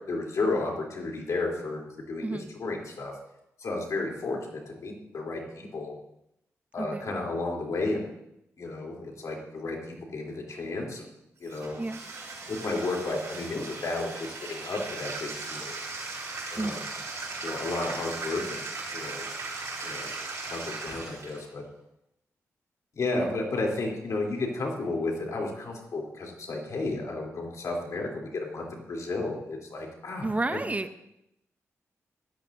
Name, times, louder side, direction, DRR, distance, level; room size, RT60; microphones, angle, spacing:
voice 1, 0.1-1.8 2.1-3.1 3.6-5.9 6.7-8.1 8.6-11.1 11.4-11.8 12.5-15.7 16.5-16.8 17.4-18.7 18.9-19.3 19.8-20.1 20.5-21.6 22.9-30.6, left 2 dB, 70° left, 0 dB, 3.3 m, -32 dB
voice 2, 2.2-2.5 6.8-7.1 11.8-12.0 16.6-16.9 23.1-23.4 30.2-31.0, right 2 dB, 25° right, 11 dB, 0.6 m, -31 dB
Bathtub (filling or washing), 11.4-21.5, right 3 dB, 60° right, 4.9 m, -38 dB
16.0 x 13.0 x 2.7 m, 0.82 s
cardioid pair, 60°, 6 cm